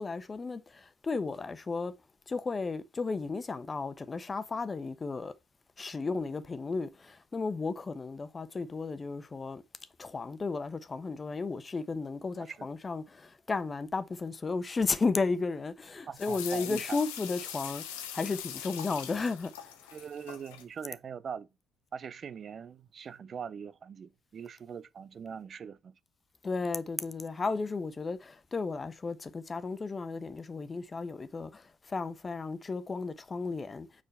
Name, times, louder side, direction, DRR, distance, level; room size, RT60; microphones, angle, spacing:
voice 1, 0.0-1.9 2.3-5.3 5.8-9.6 10.0-19.7 26.4-33.9, left 4 dB, 35° left, 1.0 m, -34 dB
sound 1, 16.1-20.6, left 10 dB, 85° left, 1.2 m, -42 dB
voice 2, 16.1-17.0 19.9-21.5 21.9-25.9, right 7 dB, 50° right, 0.6 m, -42 dB
6.8 x 5.0 x 5.5 m
hypercardioid pair, 50°, 0 cm